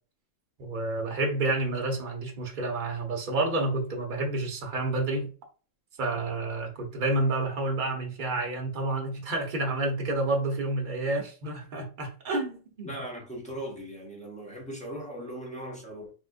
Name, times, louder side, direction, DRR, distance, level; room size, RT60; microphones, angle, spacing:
voice 1, 0.6-5.3 6.0-12.9, right 2 dB, 40° right, 0.9 m, -29 dB
voice 2, 12.8-16.1, right 1 dB, 5° left, 0.7 m, -39 dB
3.5 x 2.5 x 2.4 m
omnidirectional pair, 1.4 m